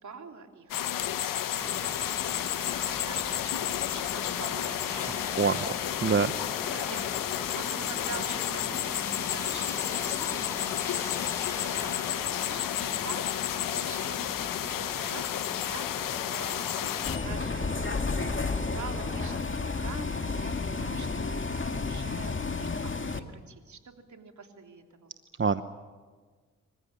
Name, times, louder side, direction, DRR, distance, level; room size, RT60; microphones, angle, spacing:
voice 1, 0.0-2.4 2.8-5.7 6.6-7.1 7.5-13.2 13.6-25.1, right 5 dB, 60° right, 4 dB, 3.3 m, -46 dB
sound 1, 0.7-17.2, left 11 dB, 80° left, 1.0 m, -31 dB
sound 2, 1.6-19.4, left 1 dB, 10° left, 1.0 m, -42 dB
voice 2, 5.0-5.6 6.0-6.9 25.4-25.6, right 5 dB, 40° right, 11 dB, 1.0 m, -27 dB
Bus, 17.1-23.2, left 4 dB, 35° left, 2.0 m, -31 dB
26.0 x 15.5 x 9.9 m, 1.4 s
supercardioid pair, 45°, 32 cm